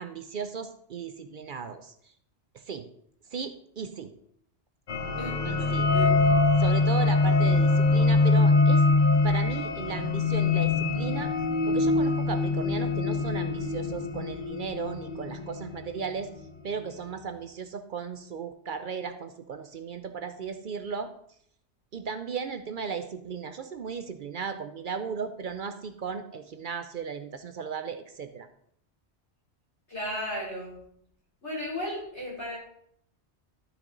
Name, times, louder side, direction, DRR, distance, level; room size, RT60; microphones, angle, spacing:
voice 1, 0.0-2.1 2.5-2.9 3.3-4.1 5.4-5.9 6.6-8.8 9.2-11.3 11.7-16.3 16.6-21.1 21.9-28.5, right 6 dB, 55° right, 9 dB, 0.7 m, -36 dB
sound 1, 4.9-16.1, left 3 dB, 45° left, 0.9 m, -24 dB
voice 2, 5.1-6.1 29.9-30.8 31.4-32.6, equal, 80° left, -6 dB, 4.9 m, -35 dB
12.0 x 5.9 x 3.9 m, 0.68 s
omnidirectional pair, 1.1 m